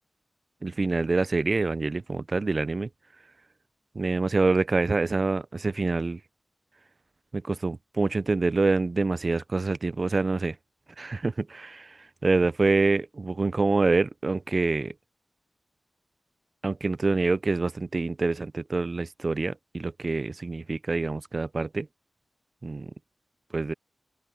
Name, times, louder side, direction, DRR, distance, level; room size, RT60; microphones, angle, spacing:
voice 1, 0.6-2.9 4.0-6.2 7.3-10.6 11.0-14.9 16.6-21.9 22.6-22.9 23.5-23.7, right 3 dB, 45° right, 0.3 m, -26 dB
open air
wide cardioid pair, 85°, 0 cm